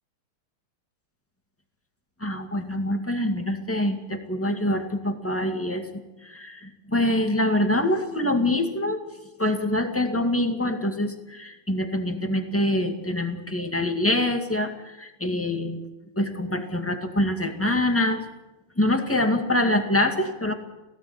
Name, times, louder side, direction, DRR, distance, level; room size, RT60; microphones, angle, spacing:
voice 1, 2.2-5.9 6.2-9.0 9.4-15.8 16.2-18.2 18.8-20.5, left 1 dB, 5° left, 4 dB, 1.9 m, -25 dB
18.5 x 16.5 x 9.7 m, 1.0 s
omnidirectional pair, 2.4 m